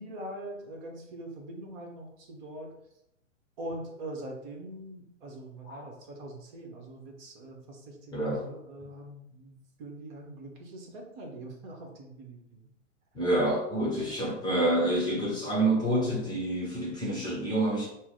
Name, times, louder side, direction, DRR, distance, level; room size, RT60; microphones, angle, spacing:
voice 1, 0.0-2.7 3.6-12.7 13.7-14.3, right 1 dB, 35° right, 1 dB, 1.2 m, -43 dB
voice 2, 8.1-8.4 13.1-17.9, right 1 dB, 10° left, -3 dB, 0.9 m, -28 dB
5.9 x 2.1 x 3.9 m, 0.80 s
figure-of-eight pair, 110°, 39 cm